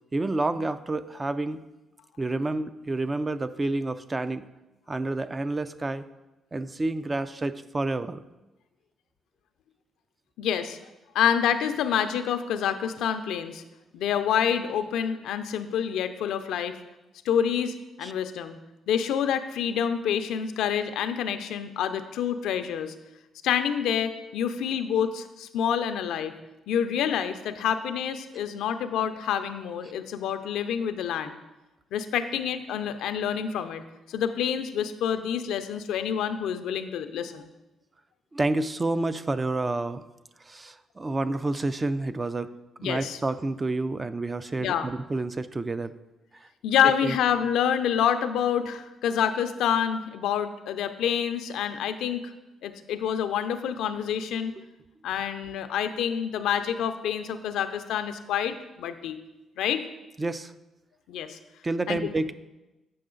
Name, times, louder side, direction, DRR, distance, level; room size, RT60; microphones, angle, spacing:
voice 1, 0.1-1.6 2.2-4.4 4.9-6.0 6.5-8.2 18.0-18.1 38.3-40.0 40.4-42.5 42.8-45.9 46.3-46.5 46.8-47.2 54.6-54.7 60.2-60.5 61.6-62.3, right 2 dB, 25° right, 12 dB, 0.3 m, -29 dB
voice 2, 10.4-10.8 11.1-13.6 13.9-16.8 17.3-18.6 18.9-22.9 23.4-26.3 26.7-31.4 31.9-33.8 34.1-37.5 42.8-43.2 44.6-44.9 46.6-52.2 52.6-54.5 55.0-59.2 59.6-59.8 61.1-61.4 61.9-62.0, left 8 dB, 85° left, 9 dB, 0.4 m, -27 dB
7.6 x 5.5 x 3.8 m, 1.0 s
cardioid pair, 90°, 0 cm